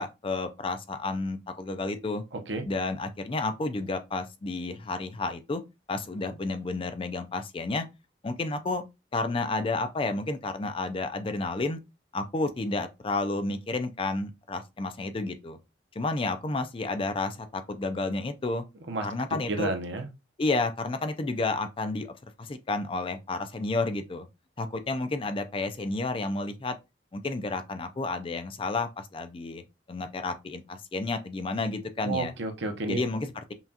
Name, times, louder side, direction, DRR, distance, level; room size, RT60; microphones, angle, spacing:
voice 1, 0.0-2.2 2.7-5.6 5.9-7.9 8.2-8.8 9.1-11.8 12.1-15.6 16.0-18.6 19.0-19.7 20.4-22.1 22.4-24.3 24.6-26.8 27.1-29.6 29.9-32.3 32.9-33.5, left 3 dB, 30° left, 0.4 m, -31 dB
voice 2, 2.3-2.6 18.9-19.1 19.5-20.1 32.0-33.0, right 3 dB, 70° right, 0.8 m, -31 dB
5.6 x 2.4 x 2.8 m
head